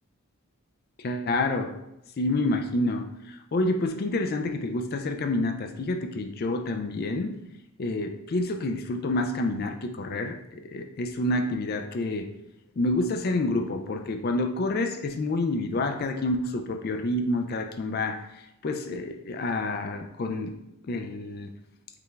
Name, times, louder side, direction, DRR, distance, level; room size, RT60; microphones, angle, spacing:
voice 1, 1.0-1.8 2.2-7.3 7.8-12.3 12.8-20.6 20.9-21.5, left 2 dB, 45° left, 5 dB, 0.3 m, -28 dB
4.9 x 2.3 x 3.3 m, 0.87 s
head